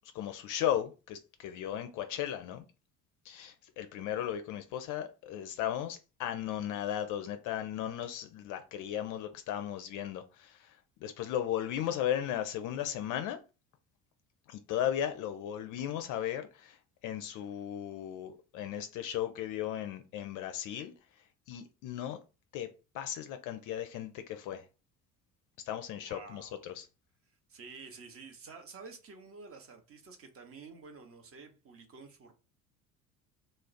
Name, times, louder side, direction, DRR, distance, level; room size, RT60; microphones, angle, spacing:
voice 1, 0.1-2.6 3.2-13.4 14.5-16.8 17.0-20.9 21.5-22.2 22.5-22.7 22.9-24.6 25.7-26.9, left 10 dB, 45° left, 0.4 m, -36 dB
voice 2, 26.0-26.6 27.5-32.3, right 4 dB, 30° right, 0.7 m, -50 dB
2.3 x 2.0 x 3.7 m
hypercardioid pair, 65°, 44 cm